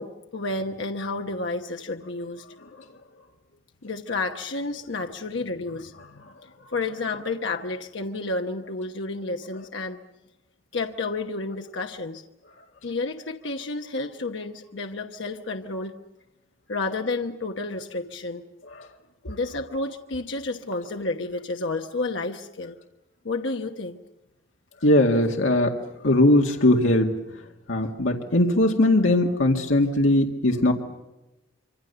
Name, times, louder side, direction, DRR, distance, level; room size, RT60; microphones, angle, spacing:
voice 1, 0.0-2.4 3.8-6.2 6.7-10.0 10.7-12.2 12.8-15.9 16.7-18.4 19.3-22.8 23.2-24.0, left 3 dB, 75° left, 4 dB, 1.1 m, -31 dB
voice 2, 24.8-25.7 26.0-27.1 27.7-30.7, left 1 dB, 90° left, 1 dB, 2.0 m, -20 dB
25.5 x 25.5 x 6.9 m, 0.97 s
head